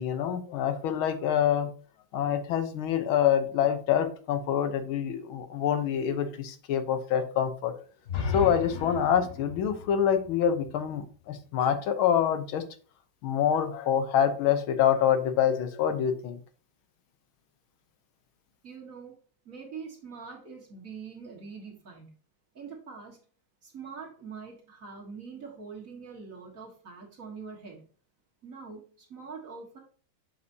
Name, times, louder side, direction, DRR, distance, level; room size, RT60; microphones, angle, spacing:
voice 1, 0.0-1.7 2.1-7.7 8.3-12.6 13.2-16.4, left 9 dB, 85° left, 9 dB, 1.7 m, -26 dB
sound 1, 8.0-11.9, left 5 dB, 55° left, 0.8 m, -36 dB
voice 2, 18.6-19.1 19.5-22.1 22.5-23.2 23.6-27.9 28.4-29.8, right 5 dB, 45° right, -1 dB, 1.9 m, -44 dB
7.7 x 5.8 x 2.7 m, 0.40 s
omnidirectional pair, 2.2 m